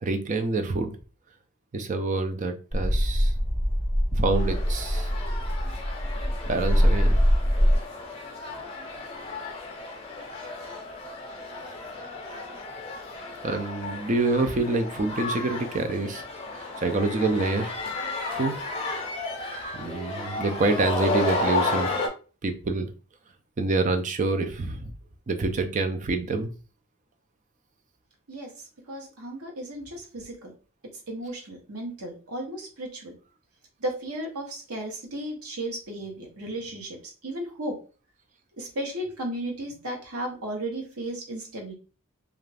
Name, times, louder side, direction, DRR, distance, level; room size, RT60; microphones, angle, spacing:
voice 1, 0.0-0.9 1.7-3.3 4.1-5.1 6.4-7.2 13.4-16.2 16.5-17.8 18.4-18.5 19.7-21.9 22.4-22.9 23.6-24.9 25.3-26.5, right 3 dB, 35° right, 8 dB, 0.4 m, -27 dB
sound 1, 2.7-7.8, equal, 10° right, 1.2 m, -23 dB
sound 2, 4.4-22.1, left 3 dB, 25° left, 0.5 m, -33 dB
voice 2, 28.9-30.5 31.1-33.1 33.8-37.8 38.6-41.7, right 1 dB, 75° right, 1 dB, 0.9 m, -34 dB
2.5 x 2.4 x 3.2 m, 0.36 s
head